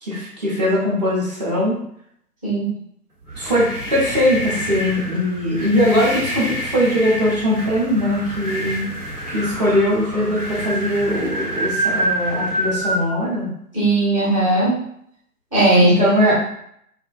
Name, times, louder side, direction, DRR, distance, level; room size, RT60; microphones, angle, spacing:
voice 1, 0.0-1.8 3.4-8.9 9.3-13.5 15.8-16.3, equal, 30° right, -7 dB, 0.6 m, -20 dB
voice 2, 2.4-2.7 13.7-14.7 15.5-16.1, right 1 dB, 25° left, -10 dB, 0.4 m, -17 dB
sound 1, 3.2-13.0, right 1 dB, 75° right, 1.0 m, -27 dB
2.4 x 2.1 x 2.4 m, 0.70 s
figure-of-eight pair, 135°, 46 cm